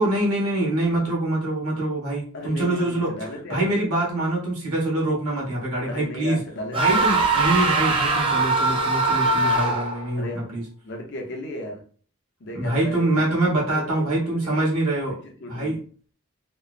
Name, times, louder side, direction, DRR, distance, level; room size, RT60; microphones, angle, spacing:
voice 1, 0.0-3.1 3.5-6.4 6.7-10.6 12.5-15.2 15.5-15.8, right 1 dB, 80° right, -3 dB, 1.2 m, -24 dB
voice 2, 2.3-3.7 5.9-7.2 10.1-11.8 12.4-13.3 13.7-14.5 15.4-15.7, left 1 dB, 50° left, 2 dB, 0.6 m, -36 dB
sound 1, 6.7-10.1, right 3 dB, 25° right, 0.4 m, -21 dB
3.0 x 2.0 x 2.4 m, 0.44 s
head